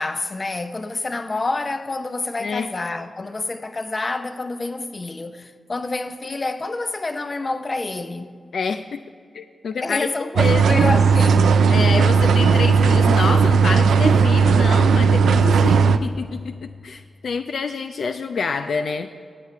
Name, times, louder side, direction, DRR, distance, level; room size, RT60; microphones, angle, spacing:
voice 1, 0.0-8.4 9.8-11.7, left 3 dB, 40° left, 0.7 m, -28 dB
voice 2, 8.5-9.0 9.3-10.1 10.4-10.6 11.7-19.1, left 5 dB, 75° left, 0.4 m, -27 dB
sound 1, 10.4-16.0, right 5 dB, 85° right, 0.4 m, -16 dB
13.5 x 8.2 x 4.5 m
cardioid pair, 50°, 0 cm